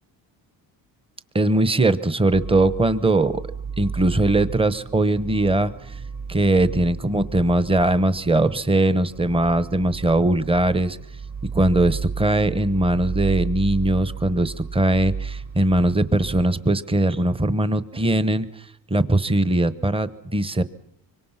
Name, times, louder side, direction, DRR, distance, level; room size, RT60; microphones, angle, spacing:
voice 1, 1.3-3.4 3.8-6.0 6.3-11.0 11.5-18.6 18.9-20.6, right 1 dB, 15° right, 15 dB, 1.0 m, -20 dB
sound 1, 2.3-16.4, right 5 dB, 55° right, 5.0 m, -33 dB
25.0 x 24.5 x 5.8 m, 0.71 s
cardioid pair, 115°, 41 cm